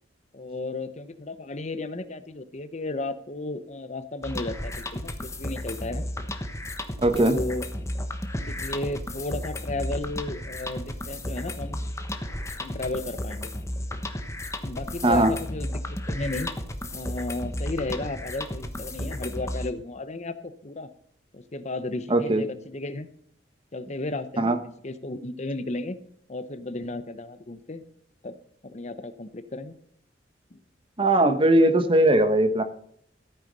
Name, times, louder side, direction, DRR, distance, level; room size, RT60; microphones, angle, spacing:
voice 1, 0.3-6.0 7.1-7.6 8.5-11.9 12.6-13.5 14.6-16.5 16.9-20.9 21.3-23.1 23.7-24.6 24.8-26.0 26.3-27.8 28.2-28.4 28.6-29.7 30.5-30.6, left 2 dB, 40° left, 12 dB, 0.9 m, -34 dB
sound 1, 4.2-19.7, left 1 dB, 15° left, 1.1 m, -33 dB
voice 2, 7.0-7.4 15.0-15.3 22.1-22.4 24.4-24.6 31.0-32.6, right 1 dB, 30° right, 9 dB, 1.2 m, -19 dB
13.5 x 9.2 x 5.4 m, 0.66 s
head